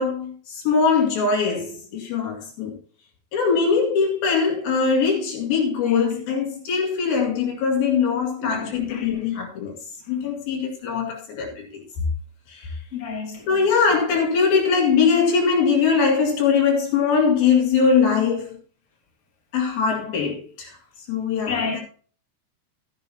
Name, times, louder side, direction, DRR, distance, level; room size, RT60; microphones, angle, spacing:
voice 1, 0.0-2.8 3.3-9.7 10.1-11.8 12.5-12.7 13.5-18.6 19.5-20.7 21.1-21.8, left 5 dB, 70° left, 3.9 m, -21 dB
voice 2, 5.8-6.2 8.4-9.2 12.9-13.5 21.4-21.7, left 5 dB, 20° left, 2.3 m, -31 dB
13.0 x 10.5 x 2.9 m
omnidirectional pair, 4.4 m